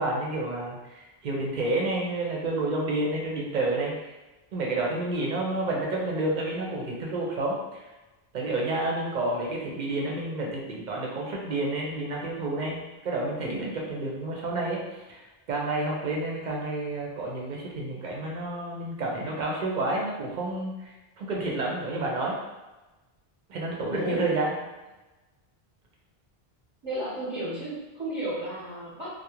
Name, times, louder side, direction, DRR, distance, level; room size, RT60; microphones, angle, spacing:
voice 1, 0.0-4.1 4.5-7.9 8.3-15.2 15.5-22.4 23.5-24.5, right 2 dB, 55° right, -2 dB, 0.6 m, -30 dB
voice 2, 23.9-24.2 26.8-29.1, right 1 dB, 30° right, -11 dB, 0.9 m, -33 dB
2.3 x 2.2 x 2.9 m, 1.1 s
omnidirectional pair, 1.0 m